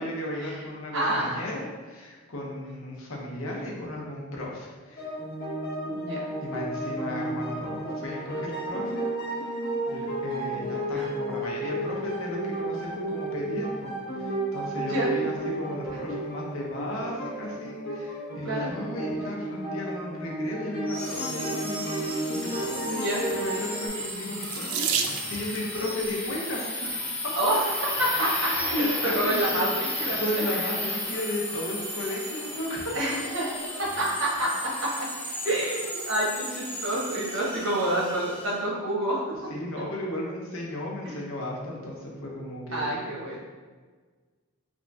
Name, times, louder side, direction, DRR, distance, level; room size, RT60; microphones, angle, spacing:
voice 1, 0.0-5.1 6.4-9.5 9.9-27.0 28.2-29.7 30.2-32.9 39.5-42.9, left 1 dB, 75° left, -2 dB, 0.9 m, -34 dB
voice 2, 0.9-1.4 5.9-6.2 10.9-11.1 14.9-15.1 18.4-18.7 23.0-23.2 27.4-28.5 28.8-29.7 30.0-30.4 32.9-33.4 34.0-34.9 35.4-39.2 41.0-41.1 42.7-43.4, right 1 dB, 65° right, -4 dB, 1.1 m, -28 dB
sound 1, 5.0-23.9, right 1 dB, 45° left, 0.8 m, -33 dB
sound 2, 20.9-38.5, left 1 dB, 10° left, 0.5 m, -34 dB
Water tap faucet / Sink (filling or washing), 24.4-25.7 26.7-27.1 27.8-27.9 28.2-28.3, right 7 dB, 90° right, 0.4 m, -30 dB
3.5 x 2.7 x 3.4 m, 1.4 s
head